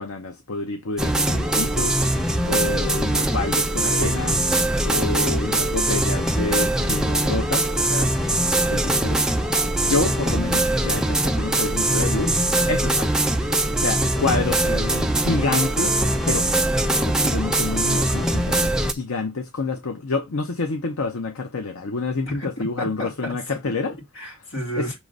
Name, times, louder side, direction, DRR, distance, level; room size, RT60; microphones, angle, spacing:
voice 1, 0.0-2.0 2.4-4.4 4.8-9.2 9.8-12.3 12.7-13.3 13.8-14.6 15.1-16.0 16.3-16.5 17.0-24.0 24.8-24.9, left 3 dB, 75° left, 0.7 m, -28 dB
sound 1, 1.0-18.9, right 1 dB, 5° right, 0.5 m, -22 dB
voice 2, 14.3-15.2 22.3-23.4 23.6-23.7 24.1-24.9, equal, 60° left, 2.3 m, -32 dB
6.4 x 3.1 x 5.2 m
head